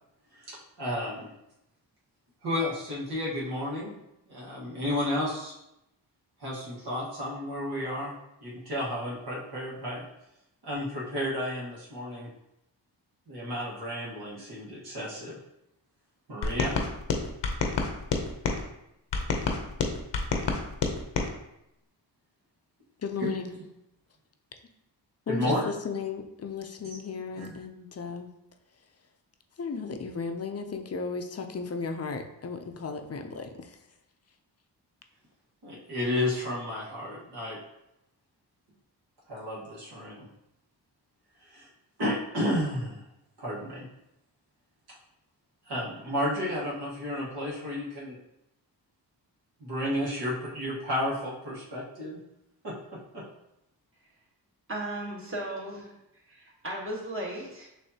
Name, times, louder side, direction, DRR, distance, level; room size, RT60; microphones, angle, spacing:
voice 1, 0.3-1.3 2.4-4.0 4.3-5.5 6.4-8.1 8.4-10.1 10.6-12.3 13.3-15.4 16.3-16.7 23.2-23.3 25.3-25.7 27.3-27.5 35.6-37.6 39.3-40.3 41.4-41.7 42.0-43.0 43.4-43.9 45.6-48.2 49.6-52.2 52.6-52.8 53.1-53.2, left 1 dB, 65° right, -6 dB, 1.5 m, -32 dB
sound 1, 16.4-18.6 19.1-21.3, left 4 dB, 80° left, 0.8 m, -29 dB
voice 2, 23.0-23.6 25.3-28.3 29.6-33.8, left 5 dB, 35° left, 5 dB, 0.5 m, -35 dB
voice 3, 54.7-55.9 56.3-57.7, right 1 dB, 30° right, -4 dB, 1.4 m, -36 dB
6.4 x 2.7 x 2.8 m, 0.84 s
wide cardioid pair, 90°, 42 cm